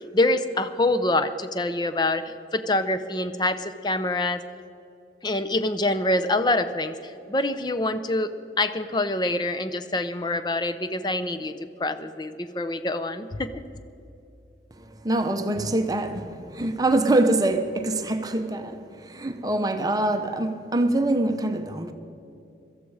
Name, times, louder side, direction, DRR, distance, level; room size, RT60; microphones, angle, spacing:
voice 1, 0.1-4.4 5.2-8.3 8.6-11.5 11.8-13.5, left 2 dB, 25° left, 0.6 m, -25 dB
voice 2, 14.8-21.9, right 2 dB, 20° right, 0.8 m, -24 dB
17.5 x 13.5 x 4.8 m
head